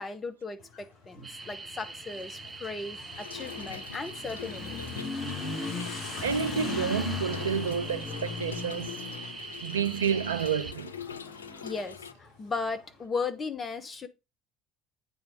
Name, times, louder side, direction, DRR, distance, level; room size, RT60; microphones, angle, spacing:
voice 1, 0.0-4.8 11.5-14.1, left 4 dB, 25° left, 1.1 m, -36 dB
Motorcycle / Accelerating revving vroom, 0.6-12.9, left 4 dB, 50° left, 4.1 m, -39 dB
sound 1, 1.2-10.7, right 3 dB, 20° right, 0.5 m, -42 dB
Trickle dribble / Fill (with liquid), 3.1-12.1, left 7 dB, 80° left, 0.3 m, -44 dB
voice 2, 5.9-9.0 9.6-10.9, right 7 dB, 80° right, 0.4 m, -30 dB
8.8 x 3.4 x 4.9 m
figure-of-eight pair, 60°, 0 cm